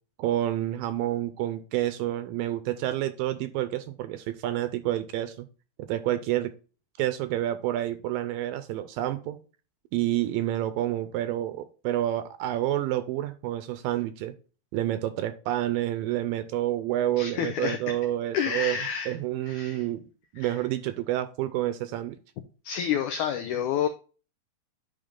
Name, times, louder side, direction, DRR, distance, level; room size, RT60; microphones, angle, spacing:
voice 1, 0.2-5.5 5.8-6.5 7.0-9.4 9.9-14.3 14.7-18.8 19.1-20.0 20.3-22.2, right 13 dB, 80° right, 11 dB, 2.1 m, -29 dB
voice 2, 17.2-17.9 18.3-19.1 19.5-19.8 20.4-20.5 22.6-23.9, left 8 dB, 85° left, 7 dB, 1.7 m, -29 dB
10.5 x 3.6 x 3.7 m, 0.36 s
omnidirectional pair, 4.3 m